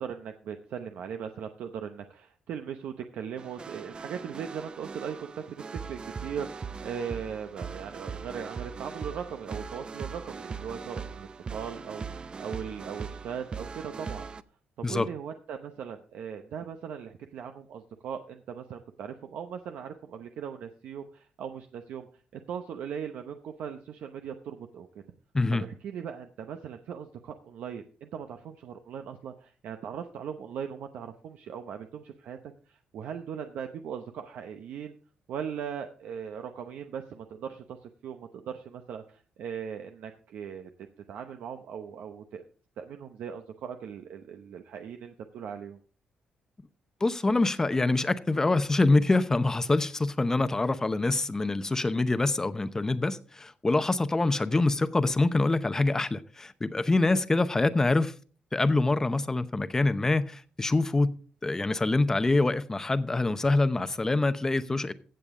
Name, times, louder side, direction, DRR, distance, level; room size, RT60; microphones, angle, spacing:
voice 1, 0.0-14.3 14.8-22.1 22.3-24.9 25.5-35.0 35.3-40.7 41.1-42.4 42.8-45.8, right 7 dB, 75° right, 0.8 m, -39 dB
sound 1, 3.4-14.4, right 5 dB, 35° right, 0.5 m, -40 dB
voice 2, 25.3-25.7 47.0-58.1 58.5-61.2 61.4-64.9, left 2 dB, 20° left, 0.8 m, -25 dB
15.5 x 7.1 x 3.7 m
cardioid pair, 95°, 3 cm